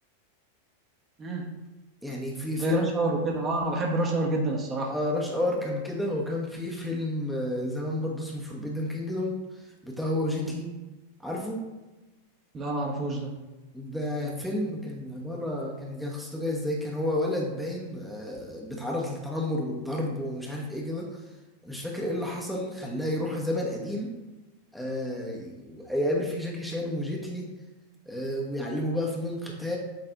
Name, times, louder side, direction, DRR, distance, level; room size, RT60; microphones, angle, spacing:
voice 1, 1.2-1.5 2.6-4.9 10.4-10.5 12.5-13.4, right 2 dB, 25° right, 0 dB, 1.2 m, -28 dB
voice 2, 2.0-2.9 4.9-9.3 9.8-10.7 11.2-11.6 13.7-21.1 21.6-24.1 24.7-27.5 28.1-29.8, left 1 dB, ahead, -2 dB, 1.1 m, -31 dB
8.0 x 3.3 x 4.0 m, 1.1 s
figure-of-eight pair, 90°, 0 cm